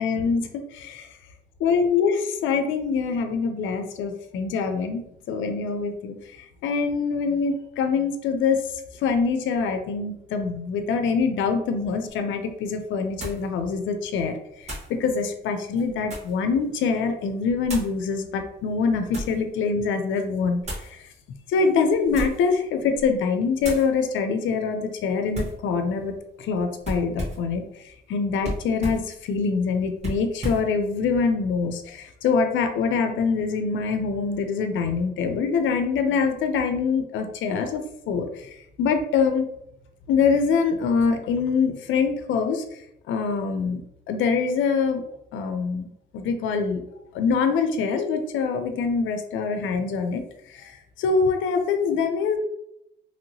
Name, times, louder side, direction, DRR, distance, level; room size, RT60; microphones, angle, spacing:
voice 1, 0.0-1.1 1.6-8.6 9.0-21.0 21.5-26.1 26.4-39.5 40.1-42.6 43.1-45.0 45.3-45.9 46.1-46.8 47.1-50.2 50.5-52.4, left 5 dB, 80° left, 7 dB, 0.5 m, -24 dB
sound 1, 12.1-12.2 13.2-13.5 14.6-14.9 15.7-16.4 17.6-18.0 18.7-19.4 20.6-20.9 22.0-22.5 22.9-23.2 23.6-23.9 25.3-25.6 26.8-27.5 28.4-29.1 30.0-30.7, equal, 35° right, 1.4 m, -33 dB
2.9 x 2.9 x 2.7 m, 0.78 s
cardioid pair, 90°, 20 cm